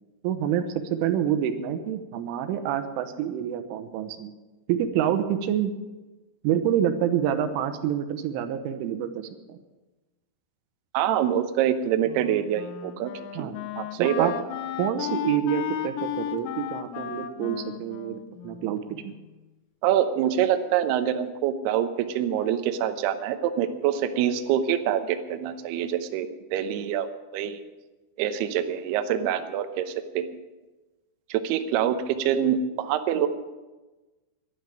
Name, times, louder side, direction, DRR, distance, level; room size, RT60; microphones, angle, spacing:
voice 1, 0.2-4.3 4.7-5.8 6.4-9.6 13.4-13.6 14.0-14.3 14.8-19.2, right 10 dB, 90° right, 9 dB, 3.4 m, -27 dB
voice 2, 10.9-13.1 13.4-14.3 19.8-27.1 27.3-27.6 28.2-30.3 31.3-33.3, right 10 dB, 75° right, 8 dB, 2.5 m, -25 dB
Wind instrument woodwind instrument, 12.1-19.2, left 11 dB, 90° left, 3.4 m, -34 dB
11.5 x 11.0 x 8.9 m, 1.2 s
omnidirectional pair, 5.6 m